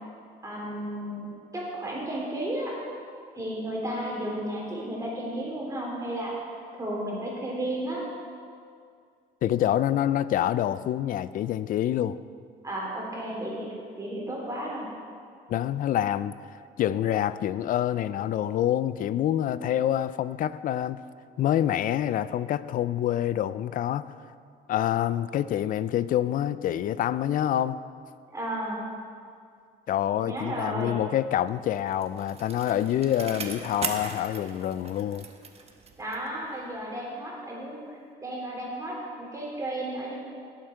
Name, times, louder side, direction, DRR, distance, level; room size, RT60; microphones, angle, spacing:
voice 1, 0.4-1.3 1.5-2.7 3.4-6.3 6.8-8.0 12.6-13.7 14.0-14.9 19.4-19.6 28.3-28.8 30.2-31.0 36.0-40.2, right 1 dB, 20° right, 3.6 m, -33 dB
voice 2, 9.4-12.2 15.5-16.3 16.8-21.0 21.4-24.1 24.7-27.8 29.9-35.3, left 11 dB, 55° left, 0.4 m, -26 dB
Bicycle, 31.5-36.4 36.7-36.8, right 5 dB, 35° right, 1.1 m, -39 dB
17.0 x 7.7 x 4.6 m
cardioid pair, 110°, 17 cm